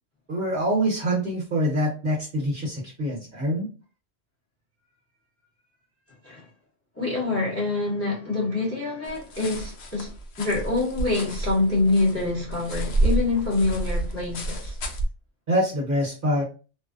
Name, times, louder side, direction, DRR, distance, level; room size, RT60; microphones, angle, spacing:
voice 1, 0.3-3.7 15.5-16.4, equal, 45° right, 1.0 m, -25 dB
voice 2, 7.0-10.1 10.4-14.8, left 3 dB, 15° left, 0.9 m, -25 dB
sound 1, 9.0-15.1, right 2 dB, 65° left, 0.8 m, -29 dB
2.5 x 2.0 x 2.4 m
omnidirectional pair, 1.2 m